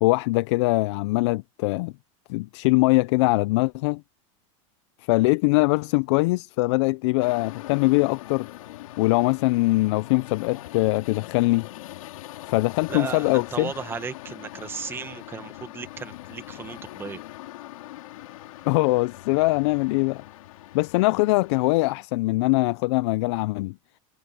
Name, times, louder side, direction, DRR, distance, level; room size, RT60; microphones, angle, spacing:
voice 1, 0.0-1.9 2.3-4.0 5.1-8.5 9.0-11.7 12.4-13.7 18.7-20.2 20.7-23.7, left 23 dB, 55° left, 0.4 m, -22 dB
sound 1, 7.2-22.1, left 16 dB, 85° left, 3.4 m, -42 dB
voice 2, 12.9-17.2, right 6 dB, 15° right, 1.3 m, -35 dB
supercardioid pair, 155°, 17 cm